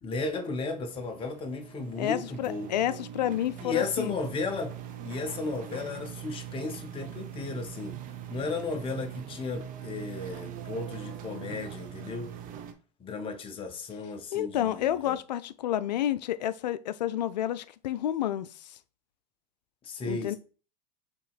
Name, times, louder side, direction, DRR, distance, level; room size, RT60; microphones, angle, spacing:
voice 1, 0.0-2.7 3.6-4.7 5.0-8.0 8.3-12.3 13.0-15.2 19.8-20.4, left 3 dB, 25° left, 0.8 m, -34 dB
sound 1, 0.7-12.7, right 10 dB, 40° right, 0.7 m, -42 dB
voice 2, 2.0-4.2 14.3-18.8 20.1-20.3, left 12 dB, 80° left, 0.4 m, -30 dB
6.9 x 2.9 x 2.3 m
hypercardioid pair, 100°, 21 cm